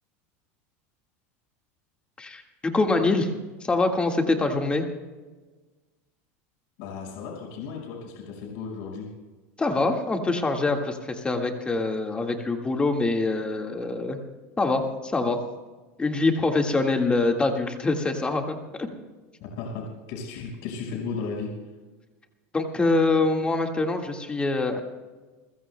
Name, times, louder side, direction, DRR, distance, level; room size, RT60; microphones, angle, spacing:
voice 1, 2.2-3.3 3.6-4.9 9.6-14.2 14.6-15.4 16.0-18.9 22.5-24.8, left 3 dB, 15° left, 4 dB, 1.8 m, -24 dB
voice 2, 6.8-9.1 19.4-21.5, left 5 dB, 65° left, -1 dB, 5.2 m, -35 dB
29.5 x 15.5 x 2.2 m, 1.3 s
supercardioid pair, 135°, 7 cm